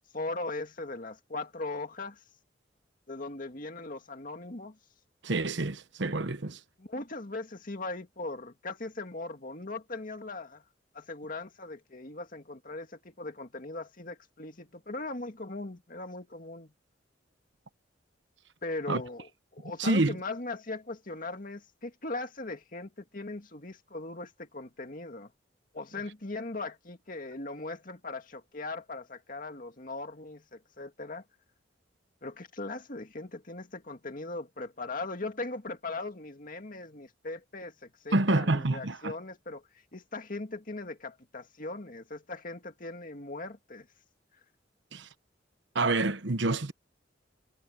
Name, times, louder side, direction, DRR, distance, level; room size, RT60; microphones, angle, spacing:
voice 1, 0.1-2.2 3.1-4.8 6.8-10.6 10.9-16.7 18.6-25.3 25.7-31.2 32.2-39.6 39.9-43.9, left 2 dB, 45° left, 2.2 m, -39 dB
voice 2, 5.2-6.6 18.9-19.0 19.8-20.2 38.1-39.1 44.9-45.1 45.7-46.7, right 2 dB, 75° right, 1.1 m, -27 dB
head